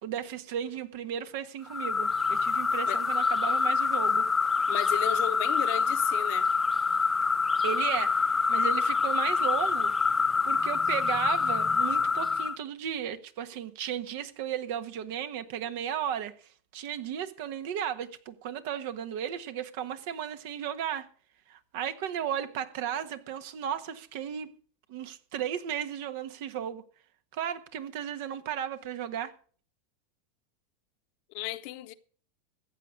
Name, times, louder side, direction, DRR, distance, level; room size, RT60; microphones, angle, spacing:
voice 1, 0.0-4.3 7.6-9.9 10.4-16.3 16.7-21.1 21.5-24.5 24.9-26.8 27.3-29.3, right 9 dB, 65° right, 1.3 m, -35 dB
sound 1, 1.7-12.6, left 5 dB, 15° left, 0.7 m, -26 dB
voice 2, 4.7-6.5 31.3-31.9, left 16 dB, 60° left, 0.9 m, -34 dB
15.0 x 8.2 x 6.4 m
hypercardioid pair, 105°, 0 cm